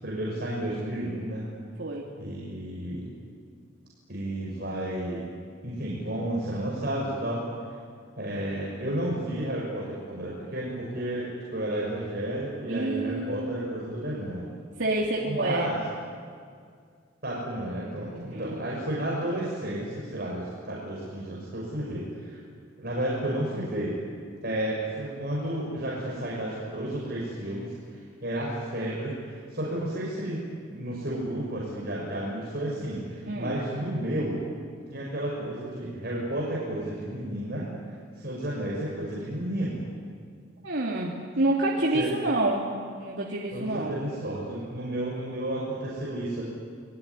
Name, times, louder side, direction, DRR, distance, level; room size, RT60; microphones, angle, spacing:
voice 1, 0.0-1.5 2.2-3.1 4.1-5.2 5.6-7.4 8.2-14.5 15.2-15.8 17.2-22.4 22.8-23.9 24.4-30.4 30.7-34.4 34.9-37.7 38.2-39.9 41.9-42.1 43.5-46.4, right 1 dB, 55° right, -5 dB, 6.2 m, -32 dB
voice 2, 1.8-2.1 12.7-13.6 14.8-15.7 18.1-18.6 33.3-33.6 40.6-42.7 42.9-44.0, right 2 dB, 70° right, -3 dB, 2.9 m, -28 dB
29.0 x 20.5 x 9.9 m, 2.1 s
head